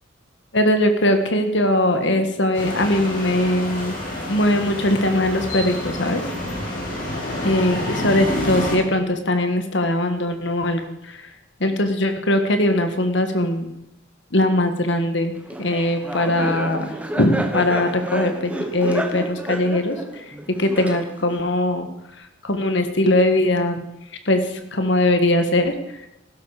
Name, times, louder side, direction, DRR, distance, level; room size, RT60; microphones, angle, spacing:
voice 1, 0.5-4.0 4.3-6.2 7.4-10.8 11.6-13.7 14.3-15.3 15.6-16.9 17.2-20.0 20.6-21.9 22.4-23.8 24.2-24.4 24.7-25.8, left 1 dB, 60° left, 7 dB, 1.7 m, -20 dB
sound 1, 2.5-8.8, left 1 dB, 45° left, 5.3 m, -28 dB
Laughter, 15.5-21.4, right 1 dB, 5° right, 1.2 m, -30 dB
16.0 x 12.5 x 5.1 m, 0.87 s
head